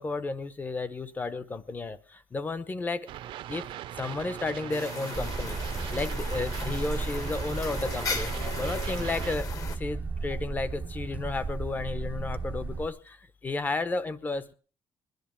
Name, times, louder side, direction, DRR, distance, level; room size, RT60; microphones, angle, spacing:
voice 1, 0.0-3.1 3.5-3.6 4.0-5.6 5.9-14.5, left 3 dB, 20° left, 14 dB, 0.8 m, -33 dB
sound 1, 3.1-9.4, right 12 dB, 70° right, 0.7 m, -40 dB
sound 2, 4.7-9.8, left 4 dB, 40° left, 1.3 m, -38 dB
sound 3, 5.1-12.9, right 3 dB, 15° right, 0.6 m, -34 dB
21.0 x 10.5 x 4.5 m, 0.39 s
cardioid pair, 165°, 9 cm